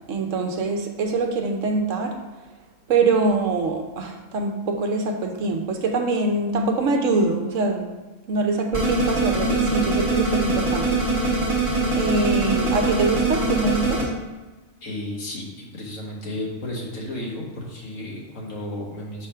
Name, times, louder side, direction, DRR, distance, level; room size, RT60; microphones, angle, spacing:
voice 1, 0.1-2.2 2.9-7.9 8.3-11.5 12.0-14.1, right 3 dB, 75° right, 4 dB, 1.2 m, -24 dB
sound 1, 8.7-14.0, right 2 dB, 40° right, 2.1 m, -23 dB
voice 2, 14.8-19.3, left 1 dB, 80° left, -2 dB, 1.9 m, -33 dB
5.9 x 3.5 x 5.5 m, 1.2 s
omnidirectional pair, 1.4 m